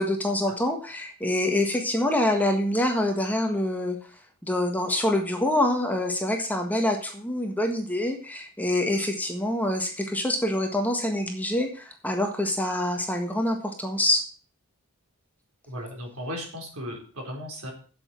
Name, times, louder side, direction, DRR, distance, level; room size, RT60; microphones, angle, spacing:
voice 1, 0.0-4.0 4.4-14.2, left 1 dB, 5° left, 3 dB, 1.5 m, -26 dB
voice 2, 15.7-17.7, equal, 70° right, 1 dB, 4.2 m, -36 dB
8.1 x 7.8 x 7.5 m, 0.40 s
head